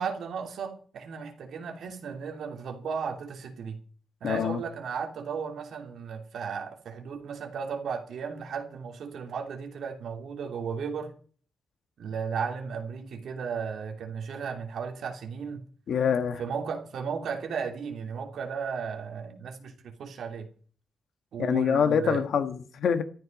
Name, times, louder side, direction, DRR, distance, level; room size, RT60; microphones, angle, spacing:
voice 1, 0.0-3.8 4.2-11.1 12.0-15.6 16.4-20.5 21.3-22.2, right 6 dB, 70° right, 2.9 m, -35 dB
voice 2, 4.2-4.6 15.9-16.4 21.4-23.0, left 7 dB, 60° left, 1.5 m, -25 dB
14.0 x 13.5 x 5.3 m
wide cardioid pair, 180°, 0 cm